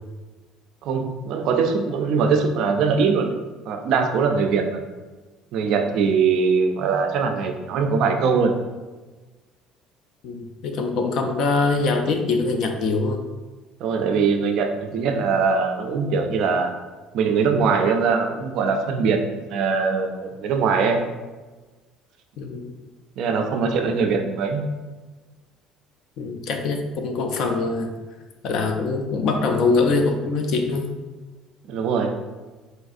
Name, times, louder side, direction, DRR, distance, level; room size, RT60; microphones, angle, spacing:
voice 1, 0.8-3.3 3.7-4.8 5.5-8.5 13.8-16.7 17.1-21.0 23.2-24.7 31.7-32.2, right 5 dB, 55° right, 5 dB, 0.3 m, -22 dB
voice 2, 10.2-13.2 22.4-22.7 26.2-27.9 28.4-30.9, left 3 dB, 50° left, 4 dB, 0.4 m, -23 dB
3.9 x 2.5 x 2.4 m, 1.3 s
cardioid pair, 170°, 0 cm